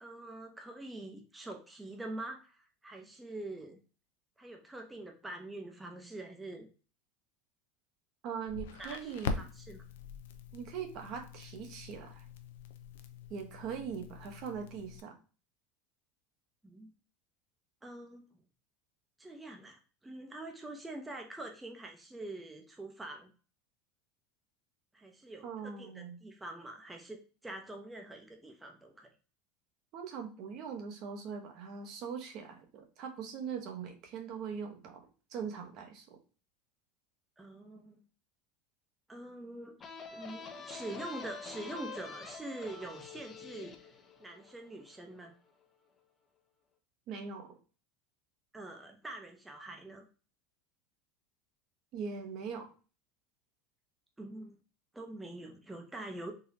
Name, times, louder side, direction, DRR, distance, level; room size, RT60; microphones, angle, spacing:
voice 1, 0.0-3.8 4.4-6.7 8.8-9.9 16.6-16.9 17.8-18.2 19.2-23.3 24.9-29.1 37.4-38.0 39.1-39.8 40.1-43.9 44.2-45.3 48.5-50.0 54.2-54.6 54.9-56.3, right 2 dB, 10° right, 2 dB, 0.7 m, -45 dB
voice 2, 8.2-9.4 10.5-12.2 13.3-15.2 25.4-26.2 29.9-36.2 47.1-47.6 51.9-52.7, right 6 dB, 55° right, 4 dB, 1.0 m, -41 dB
Crackle, 8.5-15.0, left 5 dB, 80° left, 0.5 m, -43 dB
sound 1, 39.8-45.2, left 4 dB, 30° left, 0.7 m, -47 dB
3.9 x 2.8 x 2.7 m, 0.36 s
hypercardioid pair, 105°, 0 cm